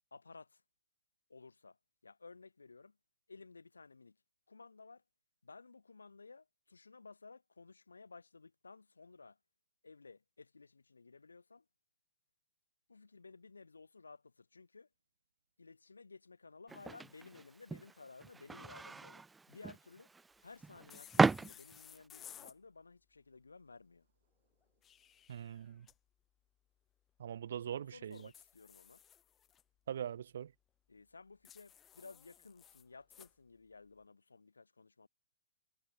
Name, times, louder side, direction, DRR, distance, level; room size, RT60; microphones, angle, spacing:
voice 1, 0.1-0.6 1.3-1.8 2.0-3.0 3.3-4.2 4.5-5.0 5.4-9.4 9.8-11.6 12.9-14.9 15.6-20.1 20.4-24.1 27.7-29.0 30.9-35.1, left 4 dB, 75° left, 3.8 m, -56 dB
sound 1, 16.7-22.1, right 4 dB, 5° right, 0.6 m, -36 dB
sound 2, 20.9-22.6 24.6-26.0 28.1-29.6 31.4-33.3, left 10 dB, 15° left, 4.0 m, -58 dB
voice 2, 25.3-25.9 27.2-28.3 29.9-30.5, right 9 dB, 55° right, 1.7 m, -42 dB
figure-of-eight pair, 120°, 0 cm